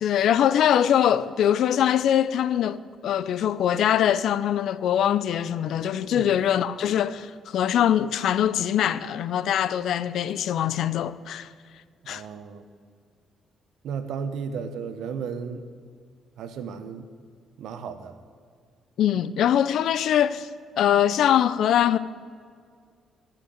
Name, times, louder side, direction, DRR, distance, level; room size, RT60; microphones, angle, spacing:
voice 1, 0.0-11.5 12.1-12.2 19.0-20.5 20.8-22.0, left 10 dB, 75° left, 0.5 m, -23 dB
voice 2, 6.0-6.4 12.0-12.6 13.8-15.7 16.4-17.1 17.6-18.2, right 6 dB, 75° right, 1.1 m, -34 dB
13.0 x 6.0 x 8.7 m
cardioid pair, 90°, 0 cm